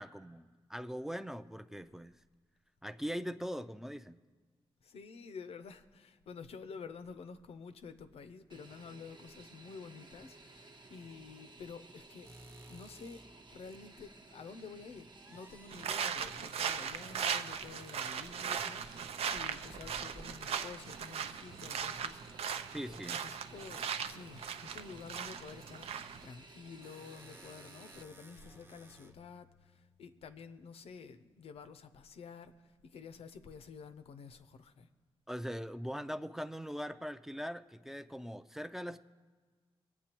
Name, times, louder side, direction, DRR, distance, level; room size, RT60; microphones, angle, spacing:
voice 1, 0.0-2.2 2.8-4.2 22.7-23.2 35.3-39.0, equal, 5° right, 0.4 m, -41 dB
voice 2, 4.8-12.3 12.7-34.9, left 5 dB, 85° left, 0.6 m, -50 dB
Fixed-wing aircraft airplane, 8.5-28.0, right 3 dB, 50° right, 0.9 m, -56 dB
sound 1, 12.2-13.9 15.1-15.8 17.8-18.0 19.2-20.8 26.3-30.5, right 1 dB, 25° right, 0.7 m, -57 dB
sound 2, 15.7-26.3, right 7 dB, 90° right, 0.5 m, -38 dB
22.5 x 8.4 x 3.0 m
cardioid pair, 90°, 10 cm